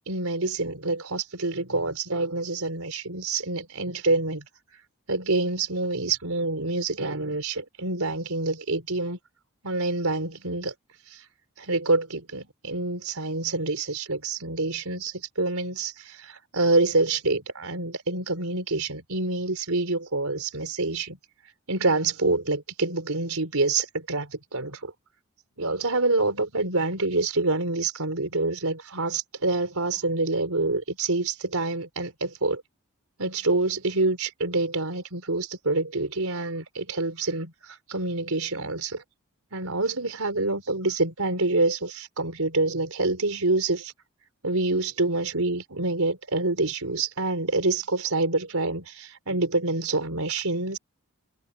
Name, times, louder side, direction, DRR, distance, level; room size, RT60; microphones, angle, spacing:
voice 1, 0.0-4.4 5.1-9.2 9.6-10.7 11.6-21.2 21.7-24.9 25.6-32.6 33.2-39.0 39.5-43.9 44.4-50.8, right 2 dB, 75° right, 4.0 m, -27 dB
head